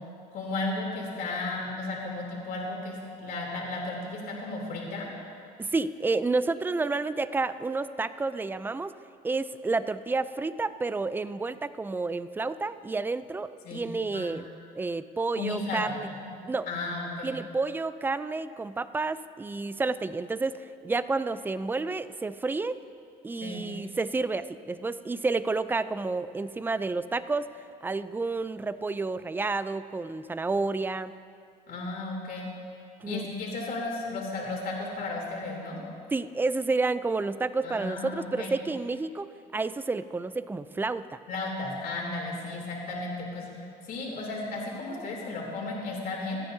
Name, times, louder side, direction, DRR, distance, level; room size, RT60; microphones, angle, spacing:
voice 1, 0.3-5.1 13.6-13.8 14.1-14.3 15.3-15.9 16.2-16.3 16.7-17.3 23.4-23.6 31.7-32.5 33.1-35.8 37.6-38.5 41.3-43.5 43.8-46.4, left 2 dB, 60° left, -2 dB, 3.2 m, -34 dB
voice 2, 5.6-8.9 9.2-14.5 14.7-16.1 16.4-16.7 17.2-22.8 23.2-27.5 27.8-31.1 33.0-33.3 36.1-41.2, right 3 dB, 10° right, 14 dB, 0.4 m, -30 dB
28.0 x 9.4 x 2.7 m, 2.4 s
cardioid pair, 110°, 17 cm